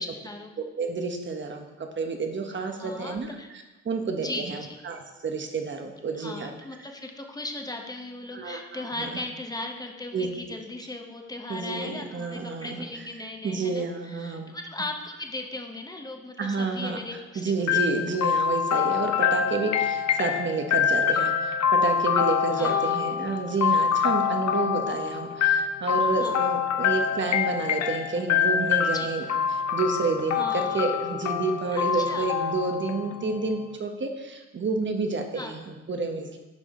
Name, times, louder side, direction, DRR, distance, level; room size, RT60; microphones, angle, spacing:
voice 1, 0.0-0.5 2.7-3.5 4.2-4.8 6.1-17.8 22.5-22.9 26.2-26.4 28.9-29.1 30.3-30.9 31.7-32.3 35.3-35.5, left 2 dB, 10° left, 3 dB, 1.1 m, -37 dB
voice 2, 0.6-6.5 8.3-8.6 9.0-9.1 10.1-10.3 11.5-12.8 13.4-14.4 16.4-17.0 17.3-29.2 29.5-36.4, right 3 dB, 40° right, 4 dB, 1.1 m, -30 dB
sound 1, 17.7-33.5, left 7 dB, 65° left, 0.8 m, -25 dB
11.5 x 5.0 x 3.7 m, 1.1 s
cardioid pair, 90°, 30 cm